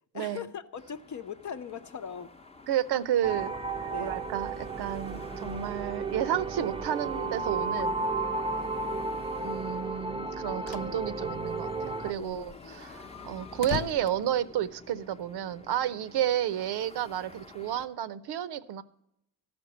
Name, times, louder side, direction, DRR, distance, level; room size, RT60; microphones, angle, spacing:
voice 1, 0.1-2.3 3.9-4.3 8.5-9.3 12.2-13.0, left 7 dB, 45° left, 0.8 m, -41 dB
sound 1, 0.7-17.9, left 3 dB, 15° left, 0.8 m, -51 dB
voice 2, 2.7-8.0 9.4-18.8, right 11 dB, 70° right, 0.7 m, -31 dB
sound 2, 3.2-12.1, right 3 dB, 15° right, 0.6 m, -33 dB
sound 3, 10.3-10.9 11.3-11.4 11.6-11.7 12.1-15.1, left 11 dB, 85° left, 0.5 m, -40 dB
13.0 x 5.2 x 8.9 m
cardioid pair, 80°, 41 cm